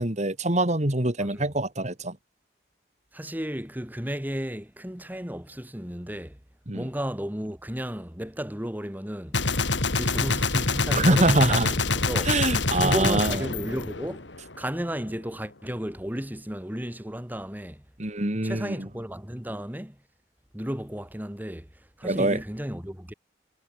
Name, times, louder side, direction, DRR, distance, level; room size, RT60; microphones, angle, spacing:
voice 1, 0.0-2.2 6.7-6.9 10.9-11.7 12.2-13.4 18.0-18.9 22.0-22.4, right 2 dB, 40° right, 2.9 m, -24 dB
voice 2, 1.2-1.5 3.1-6.4 6.7-9.4 10.0-11.7 11.9-12.3 12.7-17.8 18.4-20.0 20.5-23.1, equal, 10° right, 2.6 m, -34 dB
Gunshot gunfire, 9.3-14.6, left 3 dB, 85° left, 3.4 m, -26 dB
head